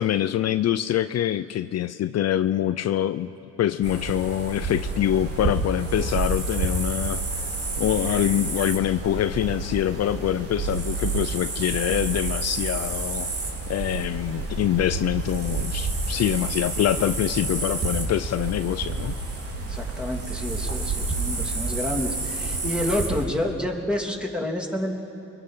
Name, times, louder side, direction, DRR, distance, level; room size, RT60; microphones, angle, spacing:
voice 1, 0.0-3.3 3.6-7.2 7.8-13.3 13.7-19.2, left 11 dB, 55° left, 11 dB, 0.6 m, -25 dB
sound 1, 3.8-23.2, right 3 dB, 50° right, 3.7 m, -29 dB
voice 2, 19.6-24.9, left 1 dB, 5° right, 0 dB, 3.2 m, -29 dB
27.5 x 23.5 x 5.7 m, 2.8 s
cardioid pair, 90°, 30 cm